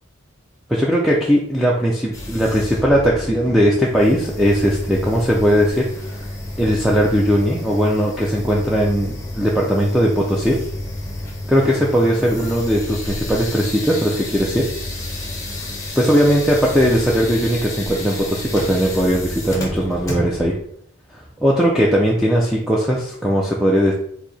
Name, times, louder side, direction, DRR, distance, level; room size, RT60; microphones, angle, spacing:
voice 1, 0.7-6.3 6.6-10.6 11.5-14.7 16.0-20.6 21.1-23.9, equal, ahead, -4 dB, 0.4 m, -18 dB
sound 1, 2.1-20.6, left 1 dB, 15° left, 0.9 m, -30 dB
4.5 x 2.7 x 4.1 m, 0.68 s
head